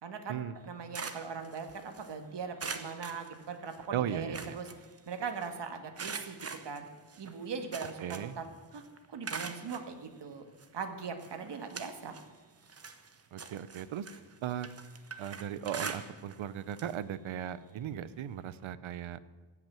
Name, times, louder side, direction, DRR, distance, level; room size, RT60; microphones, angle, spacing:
voice 1, 0.0-4.7 5.1-6.4 6.6-6.9 7.2-8.4 8.7-8.8 9.1-10.4 10.7-12.2, right 5 dB, 60° right, 6 dB, 1.7 m, -40 dB
sound 1, 0.6-2.1 2.6-3.9 4.1-5.5 6.0-8.5 8.7-9.9 10.6-10.7 11.2-12.3 12.6-16.4 16.7-16.9 17.3-17.4 18.6-18.7, right 5 dB, 30° right, 1.0 m, -43 dB
voice 2, 3.9-4.5 8.0-8.4 13.3-14.1 14.4-14.7 15.2-19.2, right 10 dB, 90° right, 16 dB, 0.8 m, -37 dB
16.0 x 5.9 x 9.0 m, 1.3 s
wide cardioid pair, 125°, 46 cm